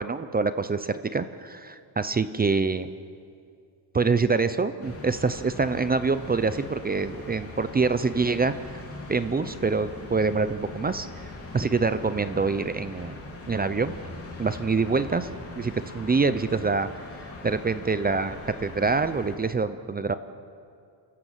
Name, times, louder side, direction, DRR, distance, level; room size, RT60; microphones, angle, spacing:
voice 1, 0.0-2.9 3.9-8.8 9.1-13.2 13.5-14.0 14.4-15.3 15.5-16.9 17.4-20.1, right 4 dB, 20° right, 12 dB, 0.6 m, -25 dB
sound 1, 4.8-19.4, left 2 dB, 30° left, 3.7 m, -41 dB
29.5 x 14.0 x 8.1 m, 2.3 s
cardioid pair, 145°, 47 cm